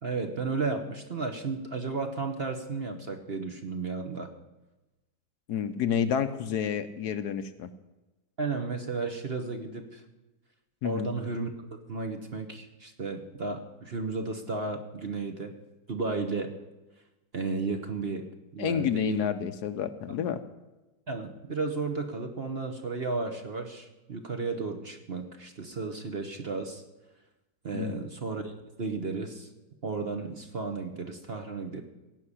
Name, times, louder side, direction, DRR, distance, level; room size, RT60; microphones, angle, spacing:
voice 1, 0.0-4.3 8.4-10.0 10.8-11.5 11.9-15.5 15.9-16.5 17.3-18.3 18.5-19.3 21.1-26.8 27.6-29.5 29.8-31.8, right 4 dB, 40° right, 5 dB, 1.1 m, -33 dB
voice 2, 5.5-7.7 10.8-11.1 18.6-20.4 27.7-28.0, left 8 dB, 70° left, 11 dB, 1.1 m, -29 dB
17.0 x 5.8 x 9.8 m, 1.1 s
omnidirectional pair, 1.9 m